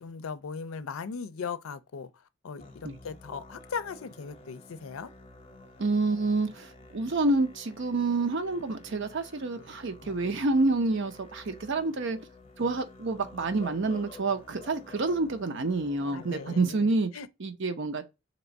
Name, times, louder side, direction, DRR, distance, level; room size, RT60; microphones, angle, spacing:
voice 1, 0.0-2.1 2.4-5.1 16.1-17.3, left 5 dB, 85° left, 0.5 m, -38 dB
Musical instrument, 2.6-16.6, left 2 dB, 30° left, 0.8 m, -50 dB
voice 2, 5.8-12.2 12.6-17.1 17.4-18.0, right 3 dB, 60° right, 0.6 m, -28 dB
3.4 x 3.0 x 3.9 m
head